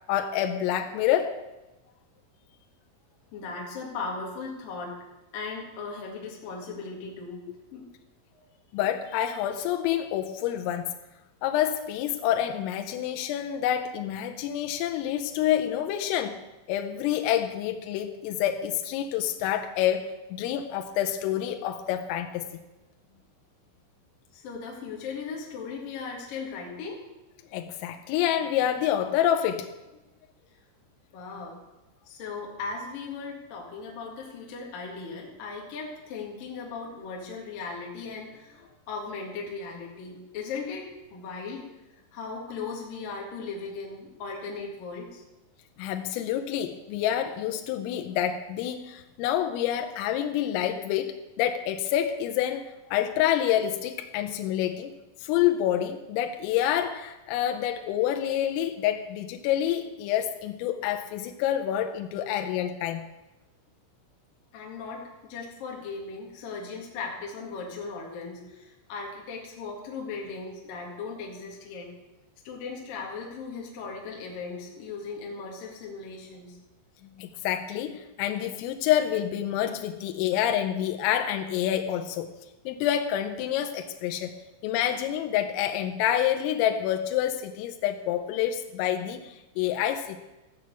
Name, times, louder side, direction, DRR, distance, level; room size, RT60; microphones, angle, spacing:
voice 1, 0.1-1.4 8.7-10.9 11.4-16.4 16.7-22.5 27.5-29.7 45.8-54.9 55.2-63.1 77.0-82.3 82.7-84.4 84.6-90.2, left 11 dB, 85° left, 6 dB, 3.4 m, -27 dB
voice 2, 3.3-5.0 5.3-7.4 7.7-7.9 8.3-8.4 24.3-27.0 31.1-31.6 32.1-40.8 41.1-41.6 42.1-45.2 64.5-71.9 72.4-76.6, left 4 dB, 50° left, -2 dB, 3.2 m, -37 dB
15.0 x 6.4 x 8.2 m, 1.0 s
omnidirectional pair, 6.0 m